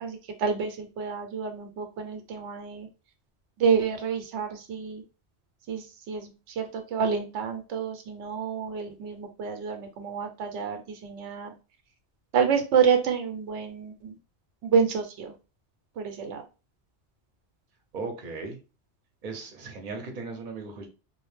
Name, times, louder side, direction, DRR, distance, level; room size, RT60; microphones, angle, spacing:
voice 1, 0.0-2.9 3.6-5.0 5.7-11.5 12.3-14.1 14.6-15.3 16.0-16.4, right 6 dB, 85° right, 6 dB, 0.9 m, -28 dB
voice 2, 17.9-18.6 19.2-20.9, right 3 dB, 50° right, 3 dB, 0.7 m, -37 dB
2.4 x 2.0 x 3.1 m, 0.31 s
omnidirectional pair, 1.2 m